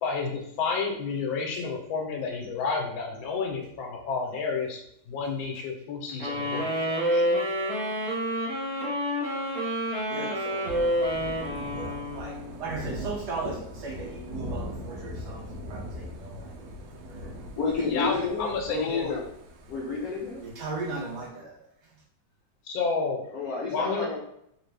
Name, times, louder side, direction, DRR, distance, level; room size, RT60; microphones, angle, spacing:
voice 1, 0.0-7.3 17.9-19.2 20.0-20.1 22.6-23.2 23.7-24.1, left 4 dB, 85° left, 1 dB, 1.4 m, -31 dB
sound 1, 6.2-12.6, equal, 25° right, 0.8 m, -28 dB
voice 2, 10.1-10.8 11.7-17.4 18.0-18.1 20.4-22.0, right 3 dB, 75° right, -1 dB, 1.0 m, -38 dB
Thunder / Rain, 10.6-21.3, equal, 90° right, 1.4 m, -40 dB
voice 3, 17.6-19.2 19.7-20.4 23.3-24.2, left 4 dB, 65° left, -5 dB, 1.0 m, -30 dB
3.3 x 2.5 x 3.2 m, 0.75 s
omnidirectional pair, 2.1 m